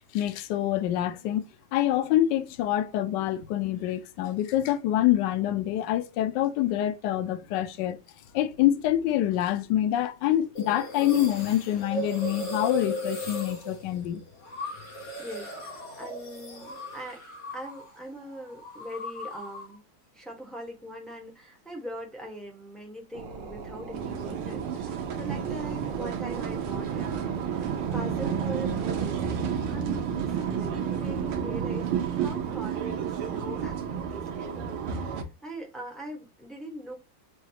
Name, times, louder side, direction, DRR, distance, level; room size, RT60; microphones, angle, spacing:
voice 1, 0.1-1.4 1.7-8.0 8.3-14.2, left 12 dB, 70° left, 1.1 m, -26 dB
sound 1, 10.6-18.0 18.2-19.8, equal, 90° left, 3.6 m, -37 dB
voice 2, 15.2-17.2 17.5-19.8 20.1-27.5 27.9-31.9 32.1-36.9, equal, ahead, 0.4 m, -41 dB
sound 2, 23.1-29.5, right 5 dB, 65° right, 1.4 m, -41 dB
sound 3, 23.9-35.2, right 7 dB, 90° right, 1.7 m, -31 dB
6.2 x 2.4 x 2.8 m
omnidirectional pair, 2.3 m